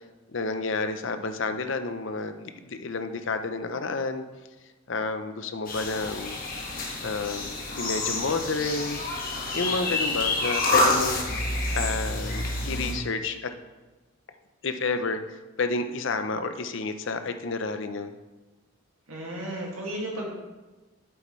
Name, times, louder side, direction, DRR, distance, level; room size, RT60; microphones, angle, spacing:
voice 1, 0.3-4.2 4.9-6.4 7.0-9.1 9.5-11.2 11.7-13.5 14.6-15.2 15.6-18.1, left 3 dB, 60° left, 8 dB, 0.6 m, -30 dB
sound 1, 5.7-12.9, left 2 dB, 40° left, 1.5 m, -28 dB
voice 2, 19.1-20.3, right 1 dB, 90° right, -2 dB, 2.2 m, -33 dB
8.8 x 7.9 x 3.2 m, 1.2 s
head